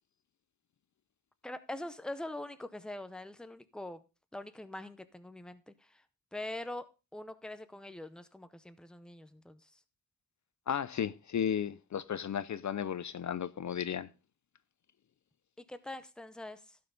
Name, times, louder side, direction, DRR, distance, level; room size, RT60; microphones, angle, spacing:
voice 1, 1.4-4.0 4.3-6.0 6.3-9.7 15.6-16.8, left 1 dB, ahead, 0.7 m, -43 dB
voice 2, 10.7-14.1, left 8 dB, 55° left, 0.5 m, -34 dB
16.0 x 5.8 x 3.9 m
wide cardioid pair, 150°, 34 cm